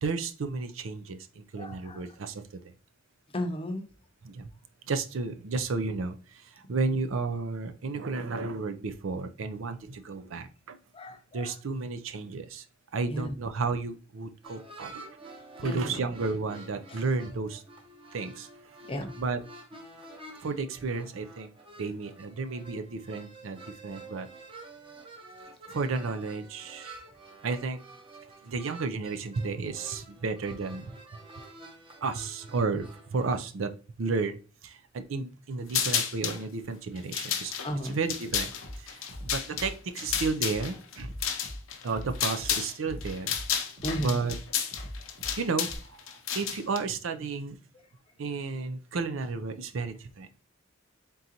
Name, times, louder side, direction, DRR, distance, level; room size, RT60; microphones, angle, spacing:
voice 1, 0.0-1.2 1.5-2.3 4.2-4.4 4.9-6.2 6.7-10.8 11.3-12.6 12.9-15.0 15.6-17.6 18.1-18.5 19.2-19.4 20.4-21.5 21.8-24.3 25.7-26.9 27.4-27.8 28.5-30.9 32.0-33.7 34.0-34.4 34.6-34.7 35.1-37.5 37.9-38.5 39.2-41.1 41.8-43.3 44.0-44.3 45.4-45.7 46.3-47.6 48.2-50.3, right 4 dB, 75° right, 9 dB, 0.5 m, -32 dB
voice 2, 1.6-2.1 3.3-3.8 10.9-11.5 13.1-13.4 15.6-16.1 16.9-17.0 18.9-19.1 37.6-38.0 43.8-44.2, equal, 25° left, 5 dB, 0.7 m, -35 dB
sound 1, 14.4-33.4, right 2 dB, 25° right, 0.8 m, -49 dB
sound 2, 35.7-36.4 37.0-42.7 43.0-46.8, left 8 dB, 80° left, 0.7 m, -31 dB
Bass drum, 38.3-38.7 39.1-39.7 40.0-40.6 41.0-41.6 41.9-42.5 42.8-43.4 43.8-44.4 44.7-45.3 45.6-45.7, equal, 50° right, 1.3 m, -41 dB
3.9 x 3.8 x 2.8 m, 0.36 s
head